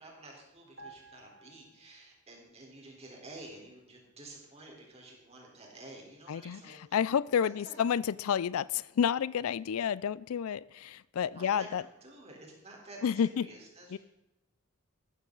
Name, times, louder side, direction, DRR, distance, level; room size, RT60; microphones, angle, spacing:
voice 1, 0.0-7.0 7.4-7.8 11.3-14.0, right 2 dB, 30° right, -1 dB, 3.9 m, -50 dB
sound 1, 0.8-2.4 2.7-2.9, right 2 dB, 55° right, 3.0 m, -54 dB
voice 2, 6.3-11.8 13.0-13.5 13.9-14.0, left 8 dB, 70° left, 21 dB, 0.4 m, -30 dB
14.5 x 13.5 x 3.9 m, 0.96 s
head